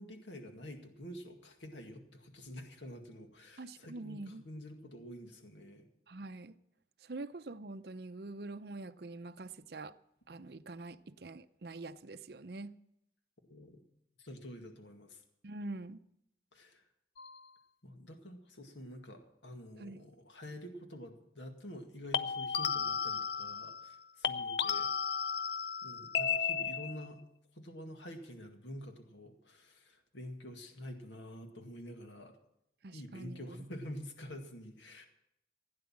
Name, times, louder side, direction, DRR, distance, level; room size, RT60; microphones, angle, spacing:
voice 1, 0.0-5.9 13.5-13.8 14.2-15.2 16.5-16.9 17.8-24.9 25.8-27.2 27.5-32.4 32.9-35.1, equal, 85° left, 2.1 m, -48 dB
voice 2, 3.6-4.5 6.1-6.6 7.0-9.9 10.3-12.8 15.4-16.0 19.8-20.0 32.8-33.6, right 2 dB, 60° right, 0.6 m, -45 dB
sound 1, 17.2-17.5 22.1-24.0 24.2-27.1, left 7 dB, 65° left, 0.6 m, -34 dB
16.5 x 9.7 x 7.4 m
head